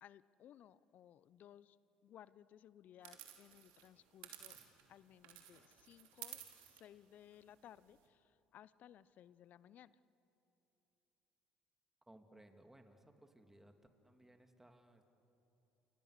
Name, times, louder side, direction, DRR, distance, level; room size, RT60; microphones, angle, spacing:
voice 1, 0.0-1.8 2.0-4.6 4.9-8.2 8.5-9.9, left 11 dB, 55° left, 18 dB, 0.8 m, -60 dB
sound 1, 3.0-5.0 5.2-8.1, right 12 dB, 75° right, 2.9 m, -55 dB
voice 2, 12.1-13.7 14.0-15.0, right 1 dB, 10° right, 5 dB, 2.9 m, -62 dB
29.0 x 28.5 x 6.8 m, 2.9 s
hypercardioid pair, 60°, 3 cm